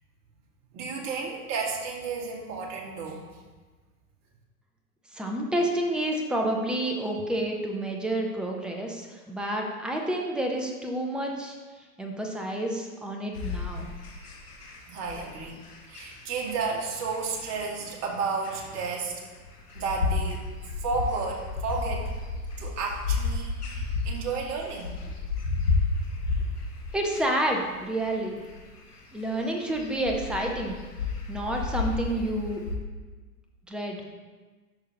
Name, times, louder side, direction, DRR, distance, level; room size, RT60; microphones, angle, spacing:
voice 1, 0.7-3.2 14.9-15.6 15.9-19.2 19.7-20.4 20.8-22.1 22.6-25.0, right 4 dB, 35° right, -2 dB, 2.0 m, -32 dB
voice 2, 5.1-11.6 12.0-13.9 26.9-28.4 29.1-30.8 31.3-32.7 33.7-34.0, right 1 dB, ahead, 1 dB, 0.4 m, -29 dB
sound 1, 13.3-32.8, left 4 dB, 85° left, 1.7 m, -33 dB
10.5 x 6.4 x 2.9 m, 1.3 s
figure-of-eight pair, 100°, 45 cm